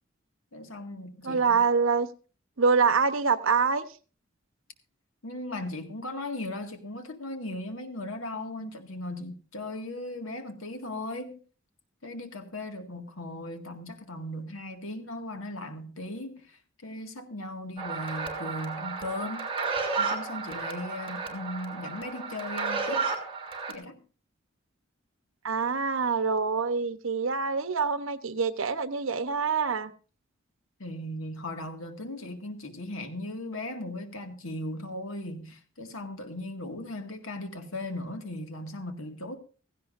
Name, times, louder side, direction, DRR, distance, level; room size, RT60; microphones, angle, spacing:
voice 1, 0.5-1.6 5.2-11.4 12.0-19.4 20.0-23.1 23.7-24.0 30.8-39.4, left 1 dB, 85° left, 2.0 m, -37 dB
voice 2, 1.2-2.1 2.6-3.8 25.4-29.9, right 5 dB, 75° right, 1.0 m, -25 dB
sound 1, 17.8-23.7, right 4 dB, 25° right, 3.0 m, -32 dB
16.5 x 15.0 x 2.6 m
head